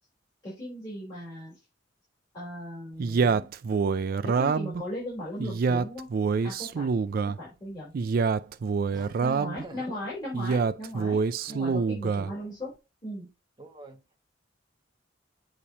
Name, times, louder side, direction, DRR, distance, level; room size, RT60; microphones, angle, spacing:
voice 1, 0.4-1.5 2.3-3.5 4.2-6.1 6.4-6.9 7.4-7.9 9.2-11.2 11.5-12.7 13.0-13.3, left 1 dB, 25° left, 4.1 m, -37 dB
Male speech man speaking, 3.0-4.8 5.4-7.4 7.9-9.6 10.3-12.3, right 5 dB, 50° right, 0.3 m, -26 dB
voice 2, 8.9-9.8 11.5-11.7 12.0-12.6 13.6-14.2, right 2 dB, 25° right, 1.2 m, -48 dB
8.5 x 3.0 x 4.0 m
head